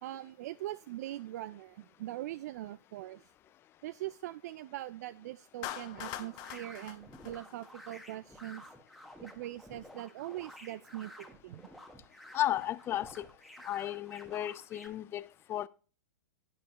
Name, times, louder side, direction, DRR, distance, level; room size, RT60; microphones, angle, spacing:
voice 1, 0.0-3.2 3.8-8.6 9.2-11.6, right 14 dB, 55° right, 0.3 m, -42 dB
Clapping, 5.6-8.0, left 13 dB, 40° left, 0.9 m, -43 dB
sound 1, 6.0-14.9, equal, ahead, 1.3 m, -52 dB
voice 2, 12.3-13.2 13.6-15.7, left 12 dB, 20° left, 0.4 m, -34 dB
11.0 x 8.5 x 3.0 m
hypercardioid pair, 120°, 10 cm